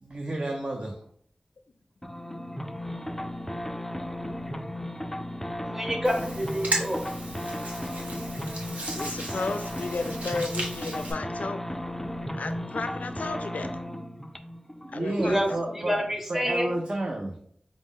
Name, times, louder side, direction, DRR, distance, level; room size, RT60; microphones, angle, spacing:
voice 1, 0.0-1.0 14.9-16.0 16.3-17.4, right 1 dB, 50° right, 2 dB, 0.5 m, -31 dB
sound 1, 2.0-16.1, left 1 dB, 10° left, 0.3 m, -35 dB
voice 2, 5.6-7.1 15.2-15.5 15.8-16.7, equal, 15° right, 1 dB, 0.9 m, -27 dB
Hands, 6.0-11.1, right 1 dB, 75° right, 1.1 m, -35 dB
voice 3, 8.9-11.7 12.3-13.7 14.9-15.8, left 3 dB, 85° left, 8 dB, 0.3 m, -34 dB
5.0 x 2.0 x 3.6 m, 0.63 s
wide cardioid pair, 65°, 2 cm